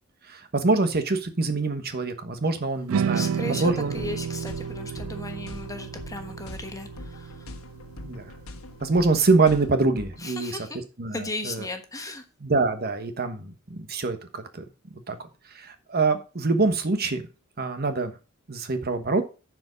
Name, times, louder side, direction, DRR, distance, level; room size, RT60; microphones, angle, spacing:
voice 1, 0.3-4.0 8.0-8.2 8.8-10.6 11.0-11.2 11.4-11.7 12.4-14.6 15.1-15.2 15.5-17.2 17.6-18.1 18.5-19.2, right 3 dB, 45° right, 8 dB, 1.2 m, -25 dB
sound 1, 2.9-9.2, right 7 dB, 70° right, 0.3 m, -32 dB
voice 2, 3.1-7.5 10.2-10.8 11.1-12.2, left 2 dB, 15° left, 6 dB, 1.2 m, -36 dB
sound 2, 3.6-10.2, left 2 dB, 80° left, 1.3 m, -43 dB
10.5 x 4.9 x 5.0 m, 0.32 s
head